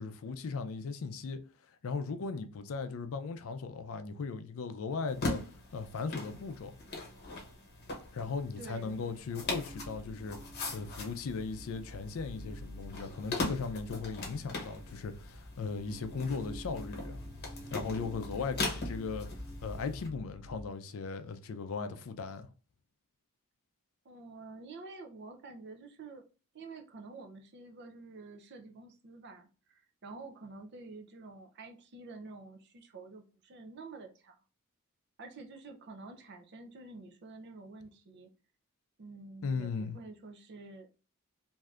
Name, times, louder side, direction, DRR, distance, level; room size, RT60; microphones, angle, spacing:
voice 1, 0.0-1.4 1.8-5.4 5.7-6.8 8.1-10.4 10.7-17.2 17.7-22.5 39.4-40.0, left 4 dB, 65° left, 0.4 m, -37 dB
sound 1, 5.1-20.1, left 2 dB, 50° left, 0.9 m, -41 dB
voice 2, 8.6-9.0 24.0-26.2 26.5-34.4 35.2-38.3 39.0-40.9, right 3 dB, 50° right, 0.5 m, -49 dB
sound 2, 9.4-20.7, equal, 30° right, 1.3 m, -47 dB
3.3 x 2.6 x 2.4 m
head